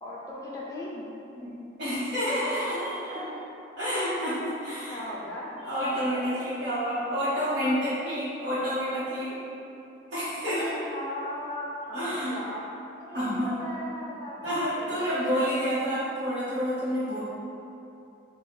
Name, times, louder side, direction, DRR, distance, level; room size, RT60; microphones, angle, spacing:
voice 1, 0.0-1.0 3.1-3.4 4.9-5.6 10.4-12.7 13.0-15.9, left 1 dB, 20° left, -5 dB, 0.4 m, -38 dB
voice 2, 1.8-3.2 3.8-5.0 5.6-9.4 10.1-10.7 11.9-12.3 13.1-13.6 14.4-17.2, equal, 70° right, -14 dB, 1.1 m, -29 dB
3.4 x 2.2 x 4.2 m, 2.8 s
head